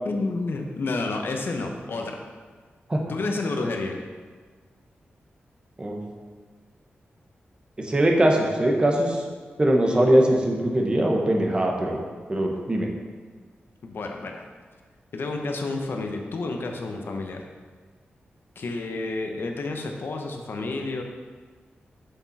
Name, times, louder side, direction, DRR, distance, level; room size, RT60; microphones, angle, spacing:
voice 1, 0.0-2.2 3.1-4.0 13.8-14.4 15.1-17.4 18.6-21.0, left 3 dB, 65° left, 3 dB, 1.0 m, -30 dB
voice 2, 7.8-9.2 9.6-12.0 12.3-12.9, right 1 dB, 25° right, 1 dB, 1.2 m, -21 dB
7.5 x 7.0 x 4.2 m, 1.5 s
wide cardioid pair, 150°, 4 cm